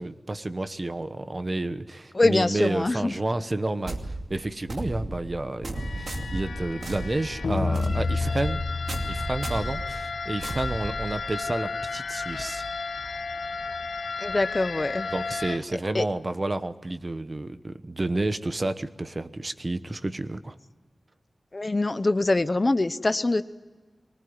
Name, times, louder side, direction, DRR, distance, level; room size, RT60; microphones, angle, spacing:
voice 1, 0.0-8.6 9.1-12.6 15.1-20.5, right 2 dB, 35° right, 11 dB, 1.1 m, -30 dB
voice 2, 2.1-3.1 14.2-15.1 15.7-16.1 21.5-23.4, left 2 dB, 35° left, 12 dB, 0.8 m, -24 dB
sound 1, 3.8-11.5, right 2 dB, 75° right, 2.5 m, -35 dB
sound 2, 5.7-15.6, left 4 dB, 90° left, 1.3 m, -32 dB
23.5 x 19.0 x 9.6 m, 1.3 s
wide cardioid pair, 90°, 0 cm